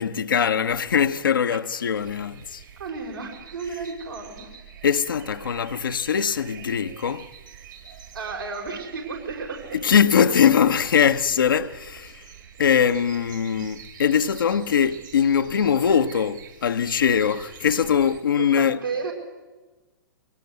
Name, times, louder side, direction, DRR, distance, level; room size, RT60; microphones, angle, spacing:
voice 1, 0.0-2.6 4.8-7.3 9.7-12.3 12.6-18.8, left 7 dB, 75° left, 0.9 m, -21 dB
sound 1, 1.9-18.2, right 9 dB, 65° right, 3.3 m, -46 dB
voice 2, 2.8-4.5 8.1-9.8 18.4-19.1, right 4 dB, 80° right, 5.2 m, -33 dB
22.0 x 18.0 x 8.0 m
figure-of-eight pair, 110°, 11 cm